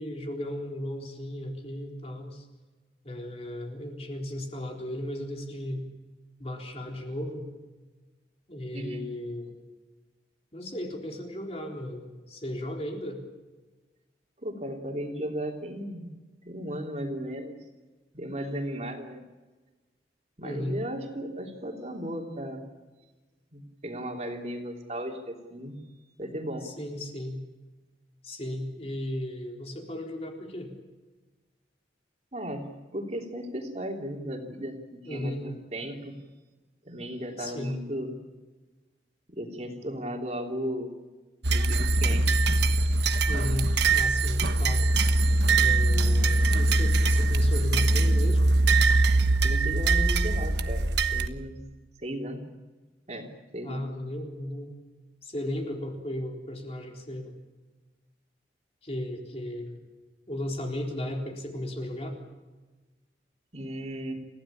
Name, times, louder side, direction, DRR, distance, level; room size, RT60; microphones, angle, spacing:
voice 1, 0.0-2.5 3.0-5.8 6.4-7.5 8.5-9.5 10.5-13.2 20.4-20.8 26.6-27.4 28.2-30.7 35.0-35.4 37.4-37.8 43.3-44.8 45.6-48.6 53.6-54.8 55.2-57.4 58.8-59.8 60.3-62.2, left 1 dB, 35° left, 1 dB, 4.0 m, -35 dB
voice 2, 8.7-9.1 14.4-16.1 16.4-17.5 18.1-19.2 20.4-22.6 23.5-25.8 26.2-26.7 32.3-32.6 32.9-36.1 36.8-38.1 39.3-40.9 41.5-42.4 49.4-51.6 52.0-52.4 53.1-53.9 63.5-64.1, equal, 35° right, 2 dB, 3.2 m, -35 dB
sound 1, 41.4-51.3, right 2 dB, 75° right, 1.3 m, -22 dB
29.0 x 16.0 x 8.6 m, 1.3 s
head